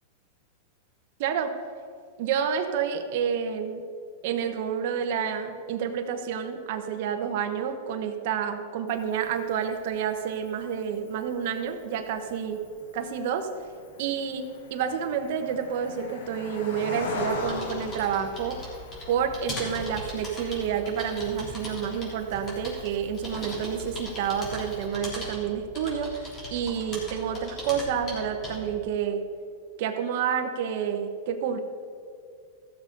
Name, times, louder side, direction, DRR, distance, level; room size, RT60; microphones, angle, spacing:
voice 1, 1.2-1.5 2.2-3.8 4.2-12.6 12.9-13.5 14.0-14.4 14.7-18.6 19.1-29.2 29.8-31.6, right 8 dB, 55° right, 5 dB, 1.1 m, -29 dB
Cricket, 8.9-24.9, left 3 dB, 75° left, 1.9 m, -42 dB
sound 1, 17.4-28.8, left 1 dB, 25° left, 3.4 m, -39 dB
15.0 x 6.9 x 5.3 m, 2.3 s
supercardioid pair, 150°, 0 cm